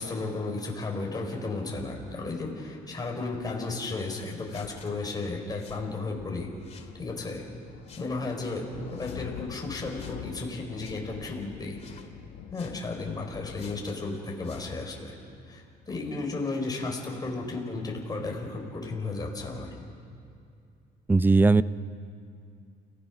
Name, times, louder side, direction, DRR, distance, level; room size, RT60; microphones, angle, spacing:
voice 1, 0.0-6.5 6.9-7.4 8.0-8.6 8.9-11.8 12.5-15.1 15.5-19.7, left 3 dB, 25° left, 0 dB, 4.7 m, -34 dB
sound 1, 3.4-4.1 4.8-5.9 6.1-13.7, left 10 dB, 90° left, 1.0 m, -45 dB
sound 2, 4.5-4.9 5.6-5.9 6.6-6.9 7.9-8.1 8.9-9.2 10.0-10.2 10.8-11.0 11.8-12.1 12.5-12.8 13.5-14.0 14.4-14.7, left 6 dB, 40° left, 2.2 m, -51 dB
voice 2, 21.1-21.6, right 3 dB, 10° right, 15 dB, 0.5 m, -18 dB
29.5 x 16.5 x 6.1 m, 2.4 s
cardioid pair, 110°, 17 cm